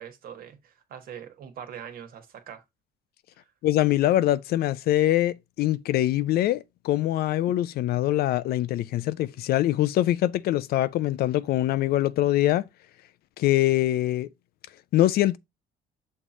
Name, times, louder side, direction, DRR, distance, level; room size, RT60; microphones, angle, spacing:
voice 1, 0.0-2.6 3.4-3.5, right 8 dB, 60° right, 1.4 m, -42 dB
voice 2, 3.6-12.6 13.4-14.3 14.9-15.4, left 14 dB, 65° left, 0.5 m, -23 dB
6.5 x 2.9 x 5.0 m
cardioid pair, 110°, 17 cm